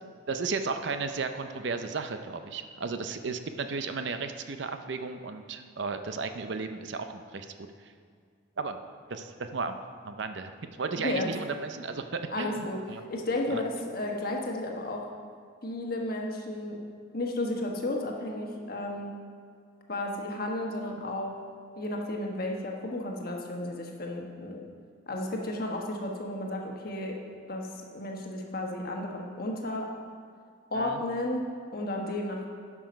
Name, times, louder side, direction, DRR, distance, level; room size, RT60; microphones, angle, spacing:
voice 1, 0.3-7.5 7.8-7.9 8.6-8.8 9.1-9.8 10.0-10.5 10.8-13.0 13.5-13.6 30.7-31.0, right 4 dB, 65° right, 8 dB, 0.6 m, -34 dB
voice 2, 12.3-12.8 13.1-15.1 15.6-16.8 17.1-19.2 19.9-21.3 21.8-24.6 25.1-27.2 27.5-29.9 30.7-31.4 31.7-32.5, left 1 dB, 50° left, 0 dB, 1.3 m, -33 dB
11.0 x 6.0 x 5.2 m, 2.1 s
head